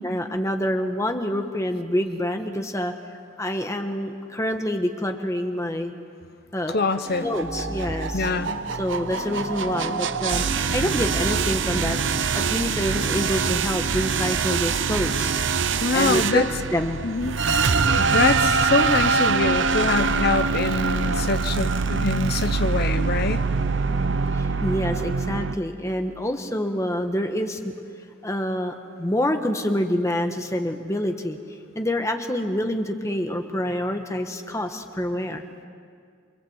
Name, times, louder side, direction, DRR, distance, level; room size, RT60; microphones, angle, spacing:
voice 1, 0.0-2.9 3.4-5.9 6.5-6.8 7.2-8.3 8.8-10.4 10.7-15.3 15.9-16.4 16.7-17.0 24.3-27.6 28.2-28.7 29.0-31.4 31.7-35.4, left 1 dB, 15° left, 5 dB, 1.3 m, -26 dB
voice 2, 6.7-7.3 8.1-8.5 15.8-16.5 17.0-17.4 18.0-23.4, left 3 dB, 50° left, 10 dB, 0.8 m, -24 dB
sound 1, 6.7-25.6, right 5 dB, 60° right, 0.7 m, -24 dB
sound 2, 7.0-13.6, right 1 dB, 15° right, 2.7 m, -35 dB
28.5 x 24.5 x 8.0 m, 2.2 s
head